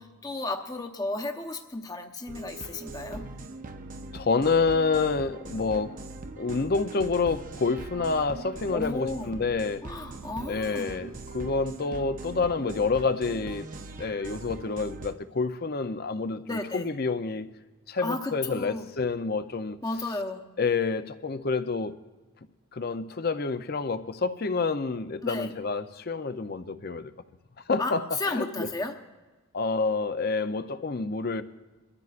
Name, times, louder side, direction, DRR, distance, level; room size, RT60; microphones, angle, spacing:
voice 1, 0.0-3.3 8.7-9.3 9.8-10.9 16.4-16.9 18.0-18.9 19.8-20.5 25.2-25.5 27.8-29.0, left 2 dB, 15° left, 0.9 m, -33 dB
sound 1, 2.3-15.1, right 2 dB, 40° right, 0.6 m, -41 dB
voice 2, 4.1-6.0 6.4-9.8 10.5-13.7 14.0-17.5 17.9-19.8 20.6-22.0 22.7-27.1 27.7-28.0 28.3-28.7 29.5-31.4, left 4 dB, 45° left, 0.6 m, -28 dB
22.5 x 13.5 x 2.5 m
head